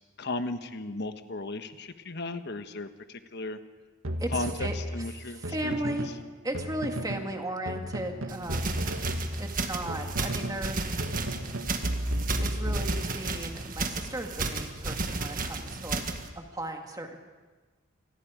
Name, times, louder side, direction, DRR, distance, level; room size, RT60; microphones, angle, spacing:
voice 1, 0.2-3.6 4.3-6.0, left 2 dB, 55° left, 9 dB, 1.2 m, -36 dB
sound 1, 4.0-6.2 6.5-7.3 7.7-10.7 11.0-13.4, equal, 80° right, 1.9 m, -33 dB
voice 2, 4.2-4.7 5.2-6.1 6.4-8.8 9.4-10.8 12.4-16.0 16.4-17.2, right 1 dB, 20° right, 3 dB, 2.0 m, -36 dB
sound 2, 8.3-16.3, right 3 dB, 45° right, 1.6 m, -33 dB
28.0 x 20.5 x 5.1 m, 1.3 s
head